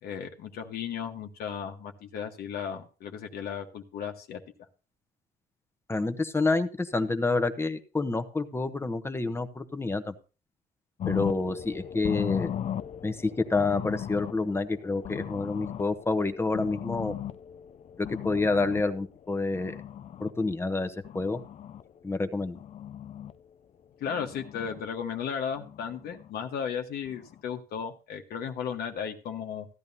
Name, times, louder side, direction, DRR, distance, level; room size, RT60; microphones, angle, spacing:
voice 1, 0.0-4.4 24.0-29.7, left 7 dB, 70° left, 4 dB, 1.3 m, -35 dB
voice 2, 5.9-10.1 11.1-12.5 13.0-17.1 18.0-19.8 20.2-21.4 22.0-22.6, left 3 dB, 15° left, 9 dB, 0.9 m, -28 dB
sound 1, 11.0-20.3 20.8-21.8 22.3-23.3 24.1-24.8 25.6-26.3 27.1-27.4, left 10 dB, 40° left, 0.5 m, -38 dB
15.0 x 10.5 x 2.8 m, 0.34 s
cardioid pair, 110°, 17 cm